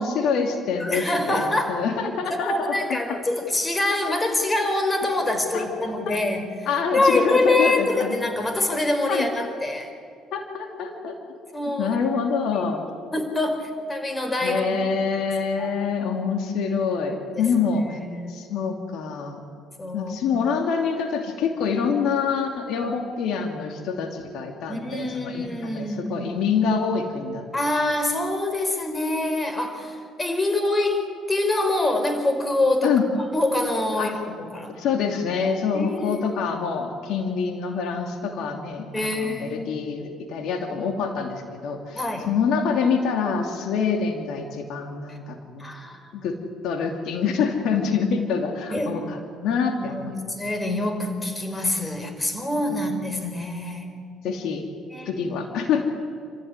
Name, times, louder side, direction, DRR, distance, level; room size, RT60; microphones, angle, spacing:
voice 1, 0.0-3.0 5.5-5.7 6.1-6.2 6.7-8.1 9.1-9.3 10.3-11.2 11.8-12.8 14.4-18.0 18.3-19.4 19.9-27.4 32.8-33.0 34.0-34.2 34.7-42.0 42.3-45.7 46.1-46.4 46.6-50.3 52.7-52.9 54.2-54.6 55.1-55.8, left 5 dB, 75° left, 4 dB, 2.7 m, -26 dB
voice 2, 0.8-1.8 2.4-9.9 11.5-12.0 12.5-12.6 12.9-14.7 15.2-15.8 17.3-18.3 19.8-20.2 22.8-22.9 24.7-26.3 27.5-33.0 33.3-34.7 35.7-36.4 38.9-39.8 41.9-42.4 45.1-45.2 45.6-46.1 48.7-49.0 49.8-53.9 54.9-55.1, left 2 dB, 20° left, 5 dB, 4.9 m, -25 dB
28.5 x 15.0 x 9.8 m, 2.3 s
supercardioid pair, 85°, 0 cm